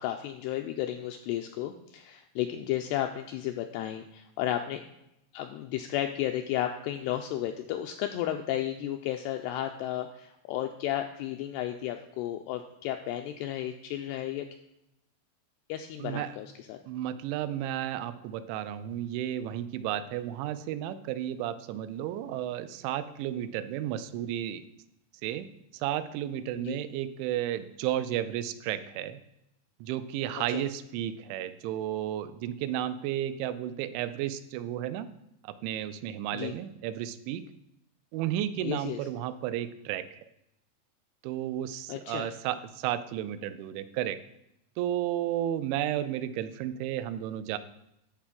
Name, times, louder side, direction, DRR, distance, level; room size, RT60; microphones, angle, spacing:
voice 1, 0.0-4.8 5.3-14.5 15.7-16.8 26.6-26.8 30.5-30.6 36.3-36.5 38.6-39.0 41.9-42.3, left 12 dB, 85° left, 5 dB, 2.3 m, -33 dB
voice 2, 16.0-16.3 16.9-24.6 25.2-25.5 25.7-29.2 29.8-35.1 35.4-37.4 38.1-40.2 41.2-44.2 44.8-47.6, right 11 dB, 90° right, 12 dB, 3.0 m, -33 dB
10.5 x 4.3 x 7.5 m, 0.83 s
omnidirectional pair, 5.2 m